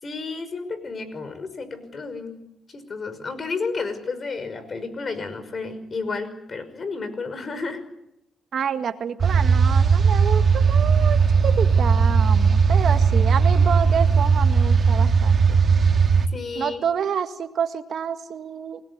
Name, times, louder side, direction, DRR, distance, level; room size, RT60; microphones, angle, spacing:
voice 1, 0.0-7.8 16.3-16.8, left 4 dB, 40° left, 11 dB, 5.8 m, -32 dB
voice 2, 8.5-15.6 16.6-18.8, right 7 dB, 60° right, 8 dB, 1.8 m, -28 dB
sound 1, 9.2-16.3, right 5 dB, 40° right, 2.8 m, -18 dB
28.5 x 19.5 x 9.8 m, 0.83 s
cardioid pair, 90°, 0 cm